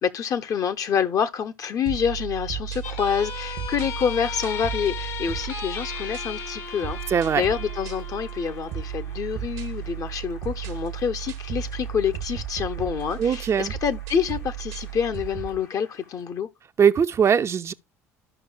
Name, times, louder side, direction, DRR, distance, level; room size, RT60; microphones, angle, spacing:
voice 1, 0.0-7.0 7.4-16.5, left 7 dB, 45° left, 0.7 m, -27 dB
sound 1, 1.9-15.6, right 10 dB, 65° right, 0.8 m, -35 dB
sound 2, 2.8-9.8, left 7 dB, 65° left, 1.3 m, -36 dB
Cheering / Applause, 6.3-16.4, left 4 dB, 85° left, 2.6 m, -53 dB
voice 2, 7.1-7.4 13.2-13.7 16.8-17.7, right 7 dB, 35° right, 0.5 m, -20 dB
14.0 x 5.4 x 2.2 m
hypercardioid pair, 60°, 8 cm